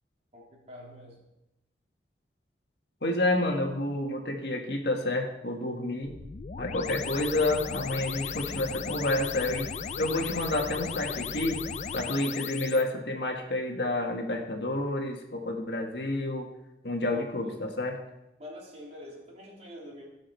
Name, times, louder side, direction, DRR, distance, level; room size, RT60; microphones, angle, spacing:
voice 1, 0.3-1.2 17.1-17.2 18.4-20.0, left 1 dB, 40° right, -3 dB, 3.2 m, -45 dB
voice 2, 3.0-6.1 6.6-9.7 10.0-11.6 11.9-16.5 16.8-18.0, left 2 dB, 70° left, 2 dB, 1.8 m, -29 dB
sound 1, 6.0-12.8, left 6 dB, 40° left, 0.4 m, -36 dB
17.5 x 6.3 x 4.6 m, 0.93 s
head